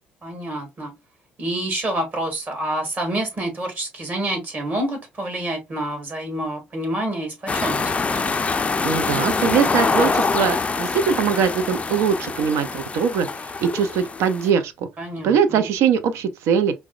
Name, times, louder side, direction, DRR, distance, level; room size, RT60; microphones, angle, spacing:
voice 1, 0.2-0.9 1.4-7.9 15.0-15.6, right 1 dB, 35° right, 1.6 m, -27 dB
sound 1, 7.5-14.5, left 4 dB, 25° left, 0.4 m, -24 dB
voice 2, 8.8-13.3 13.6-14.9 15.2-16.7, right 7 dB, 65° right, 0.5 m, -21 dB
4.6 x 2.1 x 2.4 m
hypercardioid pair, 55°, 5 cm